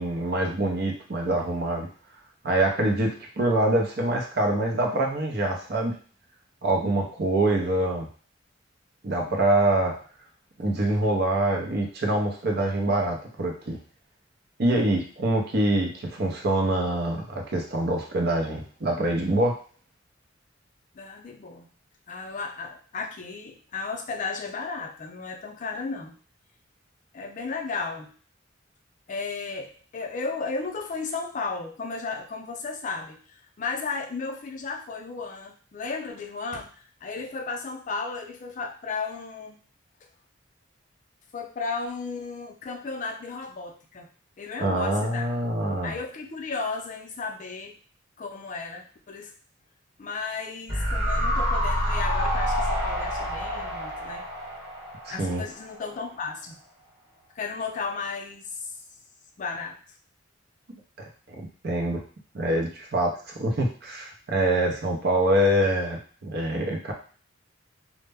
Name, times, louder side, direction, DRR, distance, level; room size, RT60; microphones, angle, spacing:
voice 1, 0.0-1.9 2.4-5.9 6.6-8.1 9.0-10.0 10.6-13.8 14.6-19.6 44.6-45.9 55.1-55.4 61.0-62.0 62.3-66.9, right 1 dB, 55° right, 1 dB, 0.6 m, -25 dB
voice 2, 20.9-21.7 22.1-26.2 27.1-28.1 29.1-36.7 37.0-39.6 41.3-44.1 44.4-45.3 45.8-47.7 48.2-49.3 50.0-54.2 55.1-56.6 57.4-58.7 59.4-59.8, left 4 dB, 40° left, 2 dB, 0.4 m, -34 dB
sound 1, 50.7-55.9 56.2-56.3, equal, 15° right, 0.9 m, -27 dB
2.1 x 2.0 x 3.3 m, 0.42 s
head